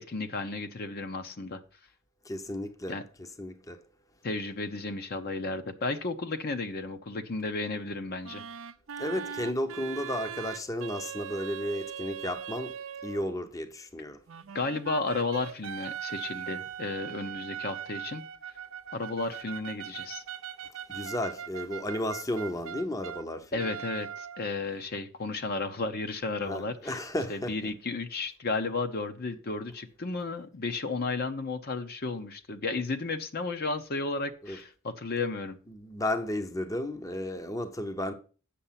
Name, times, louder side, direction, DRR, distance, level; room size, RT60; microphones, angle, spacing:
voice 1, 0.0-1.6 2.9-3.0 4.2-8.4 14.5-18.2 18.9-20.2 23.5-27.0 27.3-35.6, left 3 dB, 45° left, 0.8 m, -33 dB
voice 2, 2.2-2.9 3.4-3.8 9.0-12.8 13.0-14.2 20.9-23.7 26.4-27.5 34.4-34.6 35.7-38.1, left 1 dB, 15° left, 0.7 m, -33 dB
sound 1, 8.2-13.4 14.3-23.2 23.6-24.6, right 8 dB, 70° right, 0.5 m, -40 dB
8.4 x 6.6 x 5.7 m
head